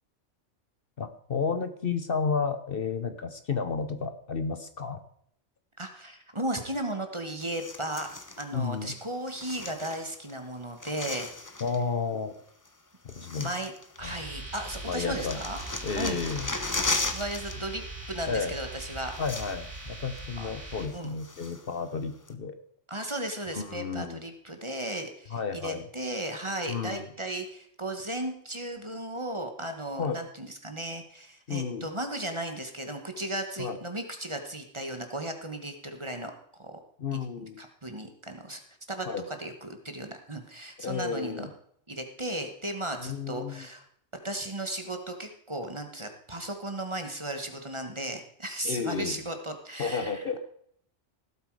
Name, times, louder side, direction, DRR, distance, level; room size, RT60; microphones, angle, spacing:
voice 1, 1.0-5.0 8.5-8.9 11.6-12.3 13.0-13.5 14.0-14.1 14.9-15.4 15.8-16.5 18.3-18.5 19.2-22.6 23.5-24.2 25.3-25.8 26.7-27.1 30.0-30.2 31.5-31.9 33.6-33.8 37.0-37.6 39.1-39.2 40.8-41.5 43.0-43.7 48.6-49.2 49.8-50.4, left 5 dB, 55° left, 10 dB, 1.0 m, -32 dB
voice 2, 5.8-8.1 8.4-11.5 13.4-13.7 14.0-15.6 16.0-16.2 17.1-19.1 20.4-20.6 20.9-21.1 22.9-36.3 36.6-36.8 37.4-38.6 38.9-41.5 41.9-43.8 44.2-50.4, right 1 dB, 25° right, 6 dB, 1.4 m, -35 dB
sound 1, 7.4-8.5 9.3-10.3 10.6-11.8 12.7-12.8 13.1-14.3 14.6-17.6 17.8-18.0 18.8-18.9 19.1-19.8 20.2-20.3 20.8-21.8 22.3-22.4, left 2 dB, 20° left, 0.9 m, -36 dB
sound 2, 14.0-20.9, right 2 dB, 85° right, 3.5 m, -41 dB
17.5 x 8.0 x 4.8 m, 0.67 s
omnidirectional pair, 1.2 m